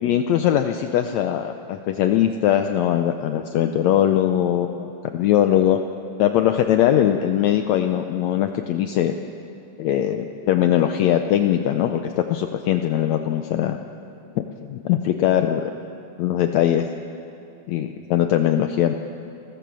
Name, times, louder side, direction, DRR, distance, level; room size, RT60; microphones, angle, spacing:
voice 1, 0.0-5.8 6.2-9.1 9.8-13.8 14.6-15.7 16.2-16.9 17.7-18.9, left 11 dB, 75° left, 7 dB, 1.7 m, -21 dB
30.0 x 14.0 x 6.2 m, 2.9 s
omnidirectional pair, 3.8 m